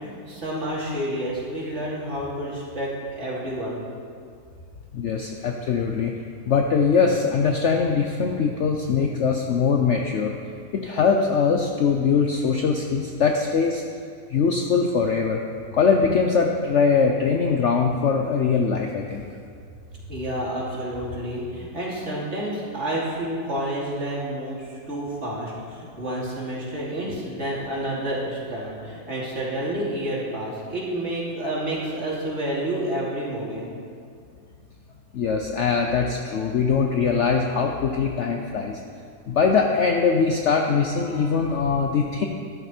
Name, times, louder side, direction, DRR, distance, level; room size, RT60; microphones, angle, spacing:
voice 1, 0.0-3.8 19.9-33.7, right 1 dB, 45° right, -5 dB, 3.0 m, -29 dB
voice 2, 4.9-6.1 6.5-10.4 10.7-13.8 14.3-15.4 15.7-19.3 35.1-38.8 39.3-42.3, left 5 dB, 55° left, 2 dB, 0.9 m, -22 dB
13.0 x 11.0 x 4.4 m, 2.3 s
omnidirectional pair, 1.7 m